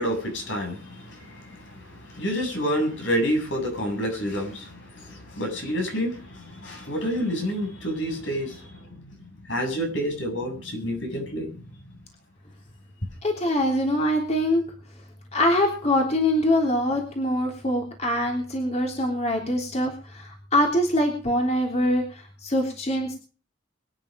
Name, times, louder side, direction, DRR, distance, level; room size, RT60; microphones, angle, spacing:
voice 1, 0.0-11.9, equal, 75° left, 7.6 m, -29 dB
voice 2, 13.2-14.6 15.3-23.2, left 1 dB, 35° left, 3.2 m, -24 dB
24.0 x 9.8 x 5.2 m
head